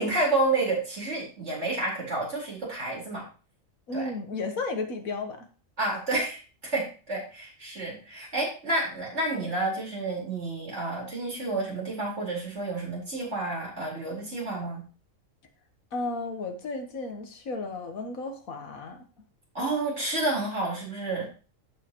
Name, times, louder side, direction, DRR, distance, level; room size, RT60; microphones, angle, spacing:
voice 1, 0.0-3.3 3.9-4.1 5.8-14.8 19.5-21.3, right 2 dB, 55° right, -4 dB, 4.5 m, -30 dB
voice 2, 3.9-5.5 15.9-19.0, left 3 dB, 90° left, 6 dB, 1.8 m, -33 dB
14.5 x 5.5 x 3.0 m, 0.35 s
omnidirectional pair, 1.4 m